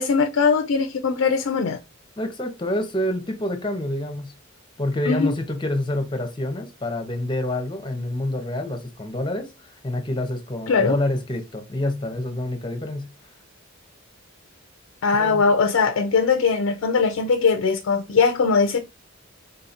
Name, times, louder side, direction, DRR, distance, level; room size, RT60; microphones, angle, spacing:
voice 1, 0.0-1.8 5.1-5.3 10.7-10.9 15.0-18.8, left 5 dB, 75° left, 0.4 m, -20 dB
voice 2, 2.2-4.3 4.8-9.5 9.8-13.1 15.2-15.4, left 1 dB, 25° left, 0.7 m, -27 dB
3.8 x 2.8 x 2.5 m
head